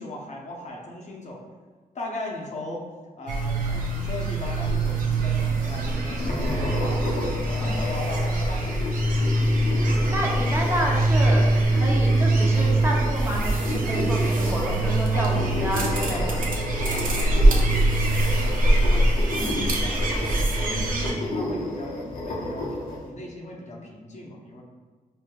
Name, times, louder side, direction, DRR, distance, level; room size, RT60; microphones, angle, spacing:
voice 1, 0.0-1.4 1.9-2.8 3.2-7.0 7.3-9.1 13.9-14.1 15.1-22.7 23.0-24.6, left 1 dB, 55° left, -2 dB, 0.7 m, -38 dB
fishing and seagulls, 3.3-21.1, right 2 dB, 75° right, 0.6 m, -23 dB
sound 1, 4.4-23.0, left 2 dB, 90° left, 0.7 m, -33 dB
voice 2, 9.8-16.4 19.3-19.8, equal, 20° right, -3 dB, 0.7 m, -30 dB
4.8 x 2.6 x 2.3 m, 1.4 s
cardioid pair, 90°, 14 cm